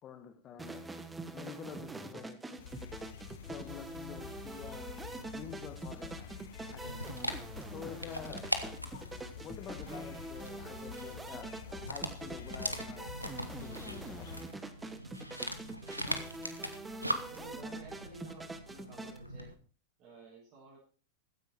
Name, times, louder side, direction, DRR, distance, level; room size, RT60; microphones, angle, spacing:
voice 1, 0.0-0.9 1.3-2.6 3.4-7.2 7.7-8.8 9.4-11.6 11.8-13.1 13.5-14.5, left 8 dB, 30° left, 1.5 m, -48 dB
sound 1, 0.6-19.2, right 2 dB, 10° right, 1.5 m, -44 dB
sound 2, 2.6-14.4, left 8 dB, 60° left, 1.0 m, -48 dB
Dog, 6.7-19.5, equal, 90° right, 1.3 m, -41 dB
voice 2, 16.1-16.7 17.3-19.5 20.0-20.8, right 2 dB, 40° right, 7.1 m, -54 dB
15.5 x 10.0 x 4.6 m
figure-of-eight pair, 90°, 0 cm